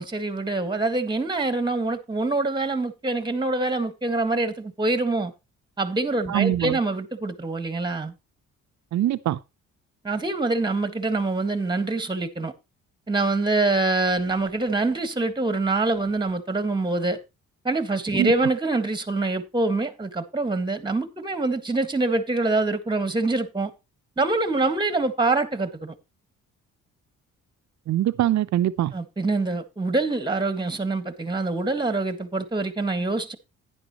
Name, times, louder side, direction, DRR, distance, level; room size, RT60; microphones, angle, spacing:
voice 1, 0.0-5.3 5.8-8.1 10.0-12.5 13.1-17.2 17.6-23.7 24.2-25.9 28.9-33.4, right 3 dB, 15° right, 1.7 m, -25 dB
voice 2, 6.3-6.8 8.9-9.4 18.2-18.3 27.9-28.9, right 12 dB, 65° right, 0.8 m, -23 dB
10.5 x 10.0 x 3.0 m
cardioid pair, 90°, 30 cm